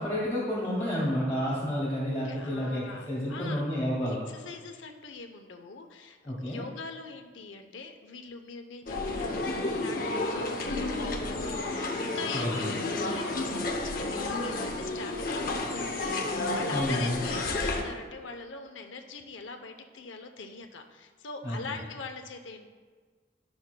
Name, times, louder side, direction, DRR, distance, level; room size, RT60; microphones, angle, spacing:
voice 1, 0.0-4.2 6.3-6.6 12.3-12.7 16.7-17.2 21.4-21.8, equal, 15° left, -9 dB, 1.9 m, -30 dB
voice 2, 2.2-22.7, left 4 dB, 90° left, 5 dB, 0.7 m, -43 dB
sound 1, 8.9-17.8, left 2 dB, 50° left, 0.7 m, -31 dB
11.5 x 6.0 x 2.2 m, 1.5 s
head